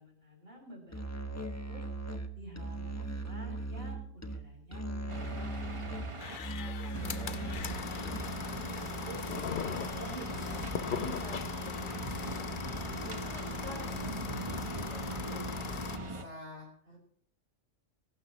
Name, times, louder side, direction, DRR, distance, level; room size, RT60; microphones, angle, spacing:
voice 1, 0.0-1.9 2.4-5.5 16.9-17.0, right 1 dB, 50° right, 0 dB, 6.9 m, -51 dB
Musical instrument, 0.9-8.5, right 2 dB, 15° left, 1.2 m, -39 dB
sound 1, 5.1-6.4 6.9-16.2, right 2 dB, 25° right, 1.2 m, -40 dB
sound 2, 6.2-16.0, left 8 dB, 50° left, 0.8 m, -39 dB
voice 2, 6.6-13.3 13.6-16.7, right 1 dB, 70° right, -4 dB, 5.0 m, -48 dB
22.0 x 12.5 x 3.2 m, 0.64 s
omnidirectional pair, 1.3 m